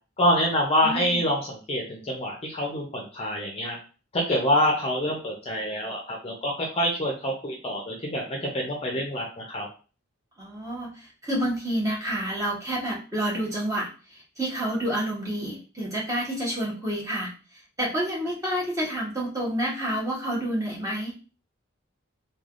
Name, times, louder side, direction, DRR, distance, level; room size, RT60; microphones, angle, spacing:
voice 1, 0.2-3.8 4.1-9.7, equal, 30° left, -1 dB, 0.5 m, -26 dB
voice 2, 0.8-1.2 10.4-17.3 17.8-21.2, right 1 dB, 15° right, -5 dB, 0.9 m, -29 dB
3.3 x 2.2 x 2.4 m, 0.35 s
head